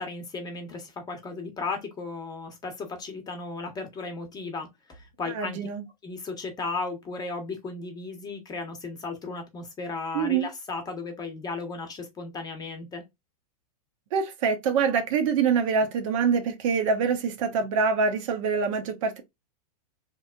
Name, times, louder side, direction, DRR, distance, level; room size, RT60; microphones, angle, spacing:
voice 1, 0.0-5.6 6.0-13.0, left 3 dB, 20° left, 0.8 m, -35 dB
voice 2, 5.3-5.8 10.1-10.5 14.1-19.2, right 5 dB, 55° right, 0.7 m, -25 dB
2.9 x 2.0 x 2.2 m
hypercardioid pair, 115°, 20 cm